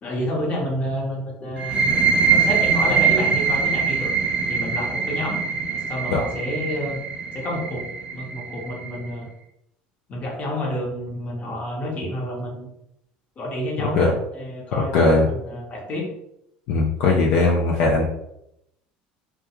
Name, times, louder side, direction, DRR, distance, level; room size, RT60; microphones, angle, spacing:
voice 1, 0.0-4.1 4.5-5.4 5.7-7.0 7.3-9.3 10.1-12.7 13.4-16.1, equal, 40° left, -1 dB, 0.9 m, -29 dB
sound 1, 1.6-9.0, right 5 dB, 30° right, 0.5 m, -23 dB
voice 2, 14.9-15.3 16.7-18.0, left 3 dB, 70° left, -1 dB, 0.4 m, -18 dB
2.3 x 2.2 x 2.9 m, 0.79 s
supercardioid pair, 95°, 4 cm